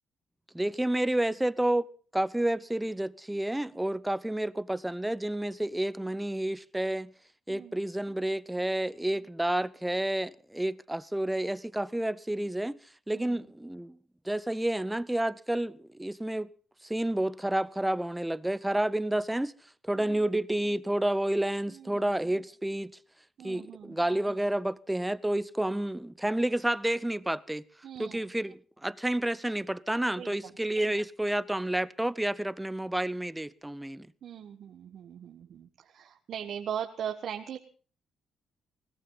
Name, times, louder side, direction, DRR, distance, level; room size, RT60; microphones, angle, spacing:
voice 1, 0.5-1.9 2.1-7.1 7.5-12.8 13.1-14.0 14.2-16.5 16.8-19.5 19.8-22.9 23.4-27.6 28.0-34.1, right 1 dB, 10° right, 0.8 m, -30 dB
voice 2, 21.7-22.0 23.4-24.0 27.8-28.2 30.2-30.5 34.2-37.6, right 9 dB, 65° right, 1.4 m, -40 dB
20.5 x 17.5 x 4.0 m
cardioid pair, 90°, 0 cm